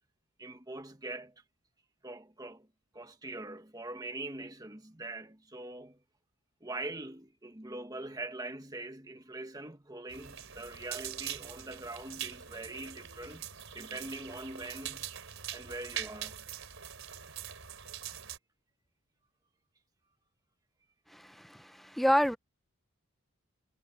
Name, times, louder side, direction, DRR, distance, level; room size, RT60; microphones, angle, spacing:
voice 1, 0.4-1.3 2.0-2.7 2.9-6.0 6.6-13.4 13.7-15.1 15.5-16.4, right 2 dB, 15° right, 1.5 m, -43 dB
sound 1, 10.1-18.4, right 10 dB, 60° right, 4.2 m, -43 dB
voice 2, 21.1-22.4, equal, ahead, 0.6 m, -28 dB
head